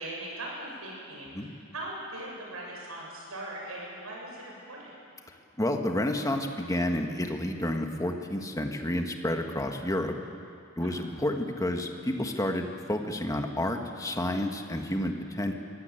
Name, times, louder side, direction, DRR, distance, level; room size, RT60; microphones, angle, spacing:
voice 1, 0.0-4.9 10.8-11.1, right 1 dB, 85° right, -2 dB, 7.6 m, -40 dB
voice 2, 5.6-10.2 10.8-15.5, left 1 dB, 15° left, 4 dB, 1.6 m, -30 dB
23.0 x 16.5 x 9.1 m, 2.5 s
head